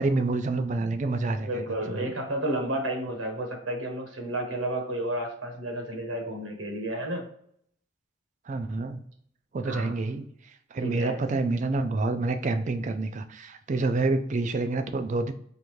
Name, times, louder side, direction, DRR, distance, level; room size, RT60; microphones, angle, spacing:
voice 1, 0.0-2.1 8.5-9.1 9.5-15.3, right 3 dB, 35° right, 9 dB, 0.4 m, -28 dB
voice 2, 1.4-7.3 9.6-9.9 10.8-11.2, right 1 dB, 80° right, 3 dB, 1.0 m, -31 dB
5.0 x 2.6 x 3.0 m, 0.65 s
head